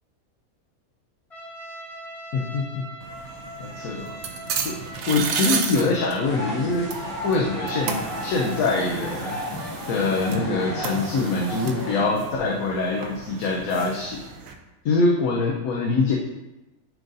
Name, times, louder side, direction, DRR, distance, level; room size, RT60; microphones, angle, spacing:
Trumpet, 1.3-9.0, right 1 dB, 25° left, 1.2 m, -41 dB
voice 1, 2.3-2.8 3.6-4.2 4.6-4.7 5.1-6.9 7.2-9.4 9.9-14.2 14.8-16.2, left 3 dB, 85° left, -1 dB, 1.1 m, -24 dB
sound 1, 3.0-14.5, right 6 dB, 75° right, 1.0 m, -34 dB
sound 2, 6.2-12.0, equal, 60° left, 2.7 m, -33 dB
9.2 x 4.0 x 2.6 m, 1.0 s
omnidirectional pair, 1.5 m